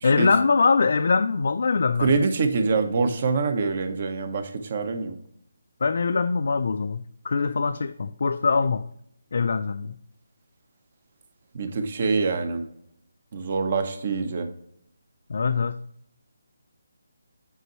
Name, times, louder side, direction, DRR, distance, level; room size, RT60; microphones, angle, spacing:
voice 1, 0.0-2.2 5.8-8.9 9.3-9.9 15.3-15.8, left 4 dB, 60° left, 0.3 m, -23 dB
voice 2, 2.0-5.2 11.5-12.6 13.3-14.5, right 4 dB, 40° right, 0.9 m, -25 dB
8.1 x 5.3 x 3.0 m
hypercardioid pair, 165°, 0 cm